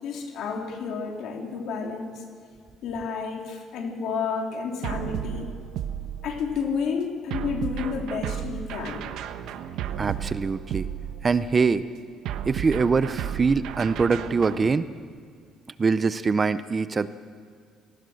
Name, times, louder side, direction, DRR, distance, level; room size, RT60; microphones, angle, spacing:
voice 1, 0.0-2.2 2.8-5.5 6.2-9.1, left 5 dB, 65° left, 2 dB, 3.3 m, -31 dB
sound 1, 4.8-6.6 7.3-11.5 12.3-14.7, right 9 dB, 75° right, 1.1 m, -33 dB
voice 2, 10.0-10.9 11.2-11.8 12.5-14.8 15.8-17.1, right 4 dB, 20° right, 13 dB, 0.5 m, -23 dB
27.5 x 18.5 x 6.4 m, 2.1 s
cardioid pair, 165°, 0 cm